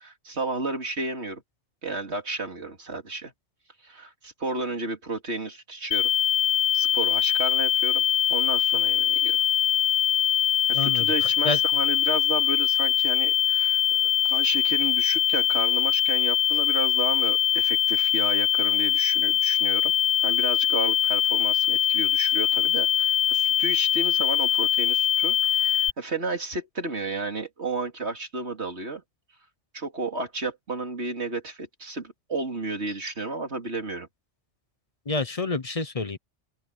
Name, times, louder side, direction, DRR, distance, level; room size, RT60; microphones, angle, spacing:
voice 1, 0.0-1.4 1.8-3.3 3.8-6.1 6.7-8.0 8.3-9.4 10.7-19.9 20.2-29.0 29.7-34.1, right 3 dB, 65° right, 3.3 m, -32 dB
sound 1, 5.9-25.9, left 10 dB, 75° left, 0.9 m, -22 dB
voice 2, 10.7-11.6 35.1-36.2, left 3 dB, 35° left, 0.9 m, -28 dB
open air
omnidirectional pair, 1.2 m